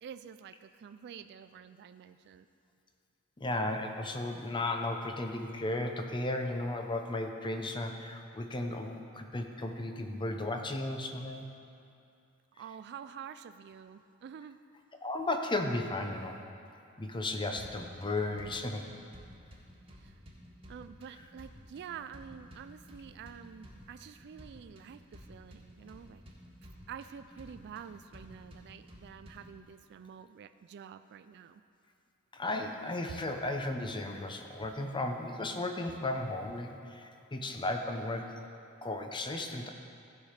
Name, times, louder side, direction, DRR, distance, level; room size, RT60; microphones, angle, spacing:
voice 1, 0.0-2.5 12.6-14.6 20.0-20.1 20.7-26.2 26.9-31.6, right 7 dB, 50° right, 11 dB, 0.3 m, -48 dB
voice 2, 3.4-11.5 15.0-16.4 17.0-18.8 32.3-38.3 38.8-39.7, left 2 dB, 20° left, 4 dB, 0.7 m, -35 dB
sound 1, 17.6-29.6, equal, 25° right, 1.5 m, -54 dB
15.0 x 5.1 x 5.7 m, 2.6 s
head